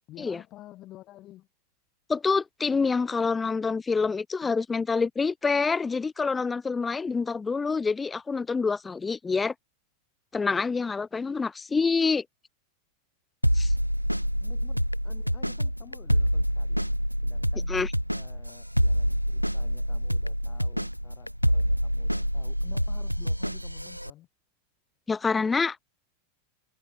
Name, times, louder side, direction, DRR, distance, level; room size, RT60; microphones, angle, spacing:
voice 1, 0.1-1.5 4.4-4.8 14.4-17.0 17.2-17.7 18.1-24.3, left 15 dB, 35° left, 6.8 m, -51 dB
voice 2, 2.1-9.5 10.3-12.2 13.6-13.7 17.7-17.9 25.1-25.8, left 4 dB, 15° left, 0.6 m, -26 dB
sound 1, 13.4-24.1, equal, 90° right, 1.2 m, -26 dB
figure-of-eight pair, 90°, 0 cm